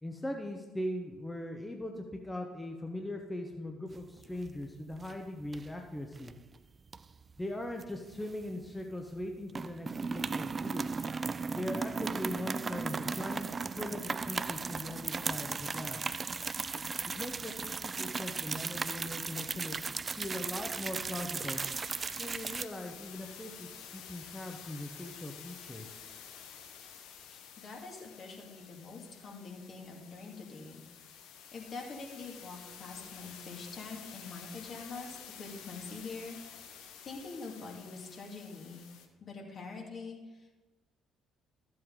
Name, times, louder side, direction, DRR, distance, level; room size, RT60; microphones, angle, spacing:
voice 1, 0.0-6.3 7.4-10.9 11.5-13.5 13.7-16.1 17.1-21.6 22.2-26.0, left 1 dB, 15° left, 2 dB, 1.1 m, -40 dB
sound 1, 4.0-4.6 4.9-5.2 5.5-6.3 6.9-8.8 9.1-9.2 9.5-22.7, right 4 dB, 35° right, 0.3 m, -36 dB
sound 2, 20.1-39.1, left 8 dB, 70° left, 0.9 m, -51 dB
voice 2, 27.3-30.8 31.5-36.7 37.0-38.8 39.2-40.5, left 4 dB, 50° left, 0 dB, 2.2 m, -45 dB
12.5 x 7.7 x 3.8 m, 1.2 s
hypercardioid pair, 50°, 0 cm